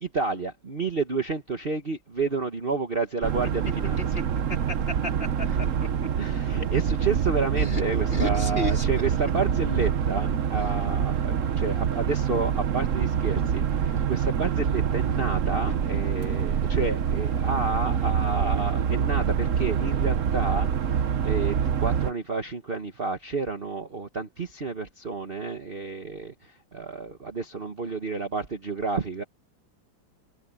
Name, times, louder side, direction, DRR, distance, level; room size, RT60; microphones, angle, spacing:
voice 1, 0.0-4.0 6.2-26.3 26.7-29.2, right 4 dB, 30° right, 1.4 m, -30 dB
sound 1, 3.2-22.1, right 8 dB, 50° right, 1.0 m, -26 dB
voice 2, 4.5-5.9 7.6-7.8 8.1-8.9 15.7-15.8, left 2 dB, 30° left, 4.2 m, -33 dB
omnidirectional pair, 2.1 m